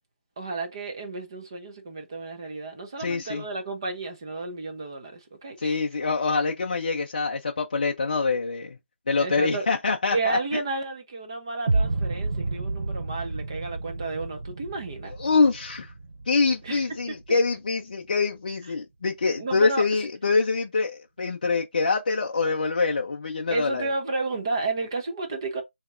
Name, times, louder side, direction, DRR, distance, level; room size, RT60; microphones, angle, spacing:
voice 1, 0.4-5.8 9.2-9.7 10.1-15.1 16.6-16.8 19.4-19.8 23.5-25.6, right 3 dB, 25° right, 0.7 m, -32 dB
voice 2, 3.0-3.4 5.6-8.8 9.1-10.6 15.2-15.9 16.3-23.9, left 4 dB, 40° left, 0.4 m, -25 dB
sound 1, 11.7-17.7, right 3 dB, 65° right, 0.7 m, -31 dB
5.0 x 2.9 x 2.4 m
hypercardioid pair, 175°, 7 cm